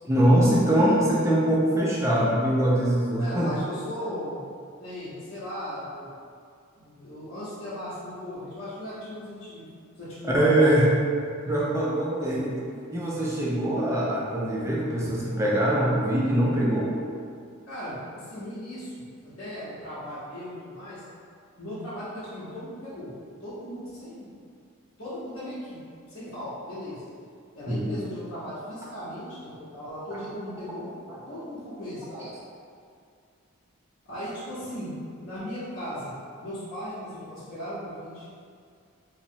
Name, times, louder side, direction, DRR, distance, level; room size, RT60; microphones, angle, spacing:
voice 1, 0.0-3.6 10.2-10.9 11.5-12.6 12.9-17.0 27.7-28.0 30.1-30.2 31.1-31.2 32.1-32.3, right 1 dB, 15° right, -5 dB, 0.3 m, -23 dB
voice 2, 3.2-4.4 4.8-6.1 6.8-9.7 10.0-10.5 17.7-18.9 19.2-21.0 21.6-23.1 23.4-24.3 25.0-25.8 26.1-27.0 27.5-30.9 31.3-32.3 34.0-38.3, equal, 80° left, -12 dB, 0.8 m, -37 dB
2.9 x 2.0 x 2.6 m, 2.3 s
head